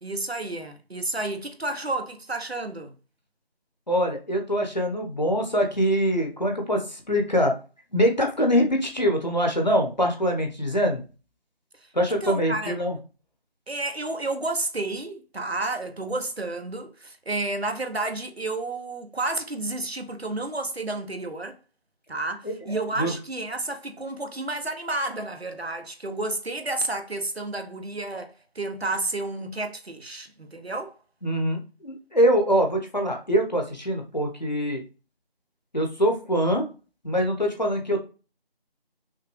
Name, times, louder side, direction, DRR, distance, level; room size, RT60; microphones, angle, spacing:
voice 1, 0.0-2.9 11.8-12.7 13.7-21.6 22.1-31.0, right 2 dB, 85° right, 1.1 m, -31 dB
voice 2, 3.9-7.5 7.9-11.0 11.9-13.0 22.7-23.1 31.2-34.8 35.7-36.6 37.0-38.0, equal, 45° left, 1.1 m, -24 dB
5.7 x 2.3 x 3.2 m
figure-of-eight pair, 175°, 30 cm